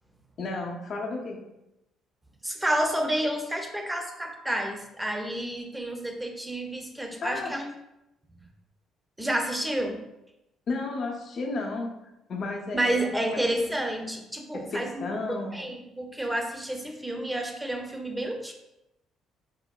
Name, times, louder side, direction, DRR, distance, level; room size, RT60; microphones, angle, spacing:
voice 1, 0.4-1.4 7.2-7.5 10.7-11.9 12.3-13.5 14.5-15.6, left 3 dB, 55° left, 1 dB, 0.6 m, -33 dB
voice 2, 2.4-7.7 9.2-10.0 12.7-18.5, right 1 dB, 10° right, 3 dB, 0.5 m, -30 dB
3.5 x 2.1 x 2.3 m, 0.90 s
hypercardioid pair, 60°, 0 cm